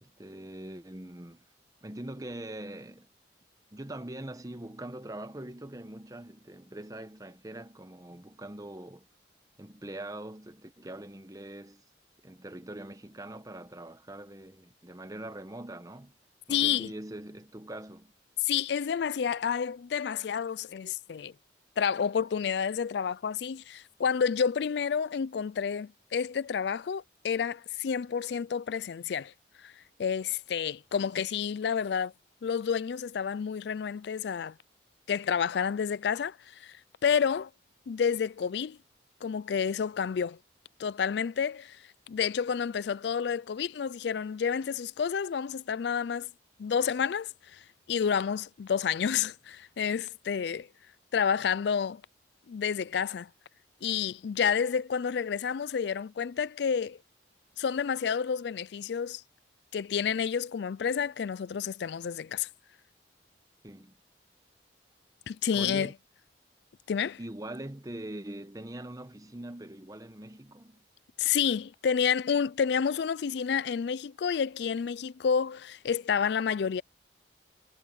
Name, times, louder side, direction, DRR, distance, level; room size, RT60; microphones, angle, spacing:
voice 1, 0.0-1.4 1.8-3.1 3.7-9.1 9.6-11.8 12.2-16.2 16.5-18.1 63.6-63.9 65.5-65.9 67.2-70.8, right 1 dB, 20° right, 1.0 m, -42 dB
voice 2, 16.5-16.9 18.4-21.3 21.8-29.3 29.6-29.7 30.0-32.1 32.4-34.5 35.1-36.8 37.0-37.5 37.9-38.8 39.2-40.4 40.8-41.8 42.1-46.3 46.6-47.6 47.9-50.7 51.1-52.0 52.5-53.3 53.8-57.0 57.6-59.2 59.7-62.5 65.3-65.9 66.9-67.2 71.2-76.8, left 7 dB, 65° left, 0.4 m, -29 dB
head